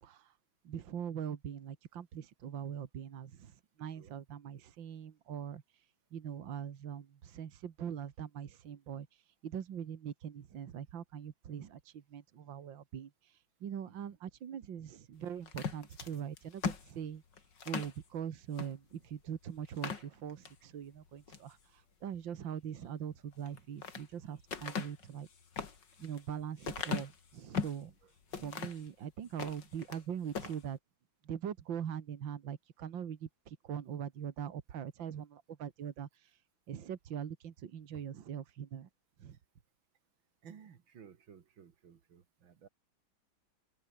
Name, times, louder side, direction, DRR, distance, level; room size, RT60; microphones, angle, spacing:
voice 1, 0.0-0.4 0.6-5.9 6.1-17.2 17.7-25.3 26.0-27.9 28.3-30.8 31.2-36.4 36.7-38.9 39.2-39.4, right 8 dB, 75° right, 2.2 m, -42 dB
sound 1, 15.5-18.0 18.5-18.7 19.1-19.2 19.6-20.6 21.1-21.5 23.3-24.1 24.5-27.8 28.3-28.9 29.3-30.0 30.3-30.6, left 6 dB, 65° left, 2.9 m, -39 dB
voice 2, 40.4-42.7, right 7 dB, 90° right, 2.7 m, -56 dB
open air
omnidirectional pair, 2.1 m